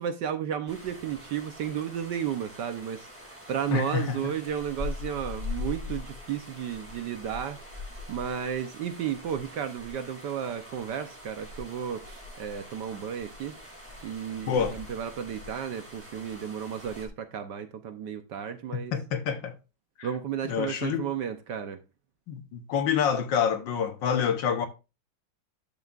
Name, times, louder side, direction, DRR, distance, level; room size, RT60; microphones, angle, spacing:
voice 1, 0.0-13.6 14.0-18.9 20.0-21.8, right 8 dB, 65° right, 1.3 m, -33 dB
sound 1, 0.7-17.1, left 3 dB, 5° right, 2.2 m, -42 dB
voice 2, 3.7-4.3 14.5-14.8 18.7-19.6 20.0-20.1 20.5-21.1 22.3-24.7, left 7 dB, 65° left, 1.5 m, -27 dB
11.5 x 7.1 x 2.5 m
omnidirectional pair, 2.3 m